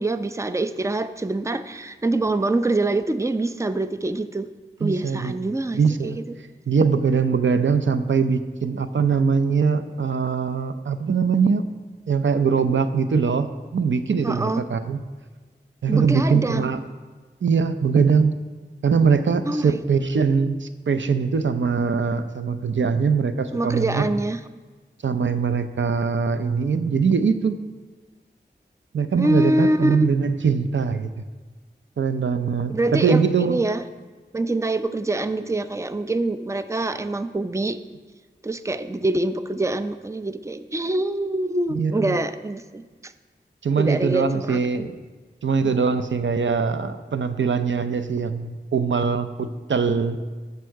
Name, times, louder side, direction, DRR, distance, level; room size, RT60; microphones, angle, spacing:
voice 1, 0.0-4.5 4.8-6.2 14.2-14.6 15.9-16.7 19.5-19.8 23.5-24.4 29.2-30.1 32.7-33.2 33.5-33.8 34.3-37.8 38.4-43.1 43.8-44.8, right 2 dB, 15° right, 11 dB, 0.5 m, -25 dB
voice 2, 4.8-5.3 5.7-6.2 6.7-11.7 12.1-15.0 15.8-16.8 17.4-18.3 18.8-24.1 25.0-27.6 28.9-31.1 32.0-33.6 41.7-42.1 43.6-45.0 45.4-50.2, right 5 dB, 85° right, 10 dB, 0.6 m, -22 dB
11.5 x 6.9 x 4.7 m, 1.4 s
cardioid pair, 45°, 19 cm